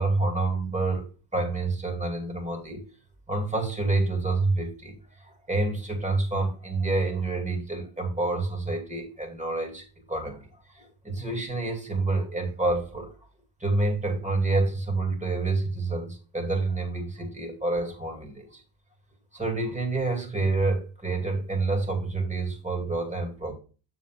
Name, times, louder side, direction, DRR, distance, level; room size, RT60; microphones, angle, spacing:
voice 1, 0.0-2.8 3.3-13.1 13.6-18.6 19.3-23.5, right 3 dB, 15° right, 2.6 m, -28 dB
7.1 x 4.2 x 5.9 m
supercardioid pair, 75°, 47 cm